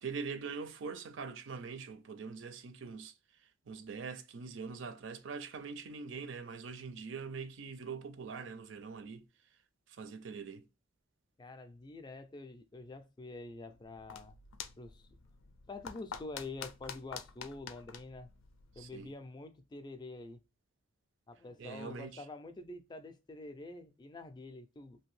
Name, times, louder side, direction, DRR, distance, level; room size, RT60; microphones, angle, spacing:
voice 1, 0.0-3.1 3.7-9.3 9.9-10.6 18.8-19.1 21.6-22.2, right 5 dB, 65° right, 0.4 m, -43 dB
voice 2, 11.4-14.4 14.8-15.1 15.7-18.3 18.8-20.4 21.3-25.0, left 2 dB, 20° left, 0.3 m, -47 dB
sound 1, 13.7-19.1, left 7 dB, 85° left, 0.4 m, -48 dB
2.7 x 2.6 x 3.0 m
head